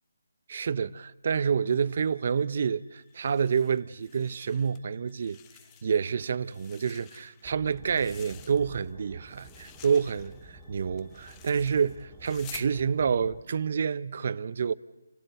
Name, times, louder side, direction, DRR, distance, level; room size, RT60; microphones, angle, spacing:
voice 1, 0.5-5.4 5.8-14.7, right 6 dB, 50° right, 0.7 m, -28 dB
sound 1, 1.3-12.9, equal, 90° left, 6.2 m, -61 dB
sound 2, 3.1-4.8 5.1-6.1 6.4-8.9 9.2-12.7, left 10 dB, 20° left, 0.8 m, -51 dB
sound 3, 7.4-13.4, right 2 dB, 10° right, 2.2 m, -51 dB
30.0 x 12.0 x 8.0 m
figure-of-eight pair, 155°, 0 cm